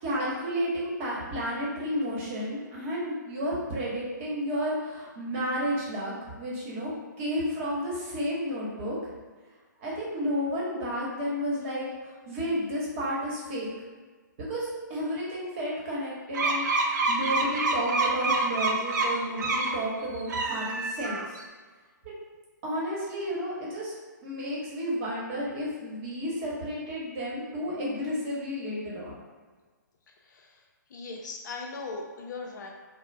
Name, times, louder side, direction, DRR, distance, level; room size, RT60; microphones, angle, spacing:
voice 1, 0.0-6.9 7.2-9.0 9.8-13.7 14.5-21.2 22.6-23.9 24.2-29.1, equal, 40° right, -5 dB, 1.0 m, -32 dB
sound 1, 16.3-19.8 20.2-21.4, right 3 dB, 65° right, 0.4 m, -27 dB
voice 2, 30.3-30.6 30.9-32.7, left 3 dB, 65° left, 1 dB, 0.5 m, -38 dB
2.4 x 2.0 x 3.1 m, 1.4 s
hypercardioid pair, 135°, 10 cm